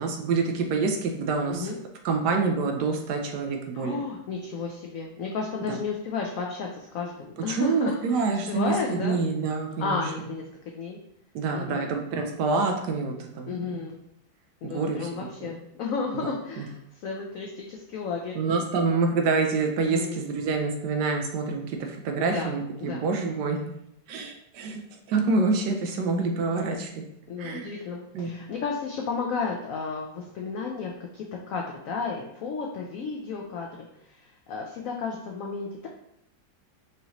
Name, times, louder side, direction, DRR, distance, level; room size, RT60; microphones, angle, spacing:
voice 1, 0.0-1.7 2.0-4.0 5.7-5.8 7.5-10.0 11.3-13.8 14.6-15.1 15.4-15.5 16.6-16.7 18.3-23.7 24.1-24.8 25.1-26.9 27.4-27.7 28.1-28.3, right 4 dB, 75° right, 3 dB, 1.1 m, -27 dB
voice 2, 1.5-1.8 3.7-9.2 9.8-10.4 10.7-11.0 11.5-12.0 13.5-14.0 14.6-18.3 19.9-20.2 22.2-23.0 27.3-33.7 34.0-35.9, left 5 dB, 90° left, 0 dB, 0.7 m, -33 dB
4.9 x 2.7 x 2.9 m, 0.79 s
omnidirectional pair, 2.0 m